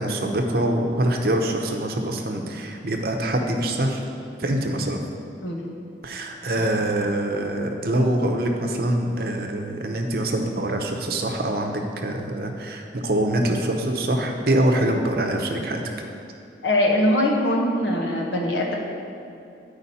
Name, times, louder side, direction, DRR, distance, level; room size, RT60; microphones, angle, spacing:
voice 1, 0.0-4.0 4.4-5.0 6.0-15.8, right 1 dB, 55° right, 3 dB, 0.7 m, -24 dB
voice 2, 5.4-5.7 6.5-6.7 16.6-18.7, left 1 dB, 80° left, -1 dB, 1.2 m, -22 dB
10.0 x 5.0 x 4.1 m, 2.5 s
head